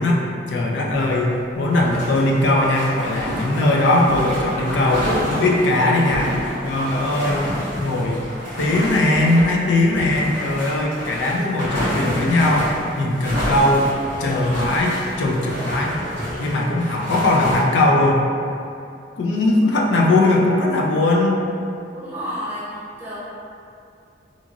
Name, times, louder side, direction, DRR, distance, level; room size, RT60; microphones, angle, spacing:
voice 1, 0.0-6.3 6.6-7.5 7.8-8.2 8.6-13.9 14.2-16.0 16.4-18.2 19.2-21.4, left 2 dB, 80° left, -1 dB, 0.4 m, -19 dB
sound 1, 0.9-1.3 1.6-17.6, equal, 35° left, 1.3 m, -29 dB
voice 2, 21.9-23.2, equal, 10° right, -10 dB, 0.6 m, -31 dB
2.8 x 2.5 x 2.4 m, 2.5 s
head